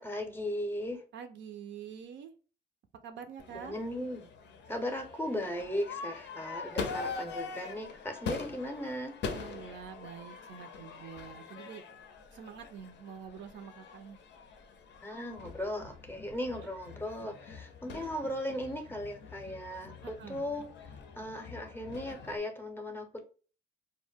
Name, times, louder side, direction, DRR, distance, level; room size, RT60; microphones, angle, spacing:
voice 1, 0.0-1.0 3.5-4.3 4.7-9.1 15.0-20.7 21.2-23.2, left 1 dB, 10° left, 4 dB, 0.5 m, -37 dB
voice 2, 1.1-2.3 3.0-3.8 9.3-11.8 12.3-14.2 20.0-20.4, right 7 dB, 65° right, 7 dB, 0.4 m, -46 dB
Crowd / Fireworks, 3.4-22.4, left 5 dB, 60° left, 0.5 m, -43 dB
2.2 x 2.1 x 3.3 m, 0.37 s
cardioid pair, 90°, 20 cm